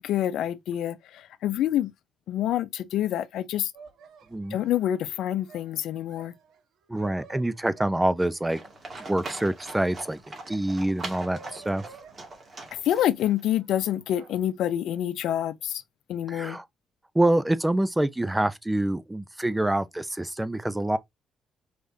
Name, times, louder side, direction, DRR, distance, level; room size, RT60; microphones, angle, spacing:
voice 1, 0.0-1.9 2.3-3.7 4.5-6.3 12.8-15.8 16.1-16.6, left 11 dB, 80° left, 0.5 m, -27 dB
sound 1, 3.7-9.7 10.2-12.7 13.2-14.4, right 5 dB, 75° right, 1.1 m, -52 dB
voice 2, 6.9-8.6 9.1-11.9 16.3-16.7 17.1-21.0, right 1 dB, 10° right, 0.5 m, -26 dB
Livestock farm animals working animals, 8.5-13.4, right 2 dB, 35° right, 1.9 m, -41 dB
4.9 x 3.4 x 2.7 m
cardioid pair, 90°, 0 cm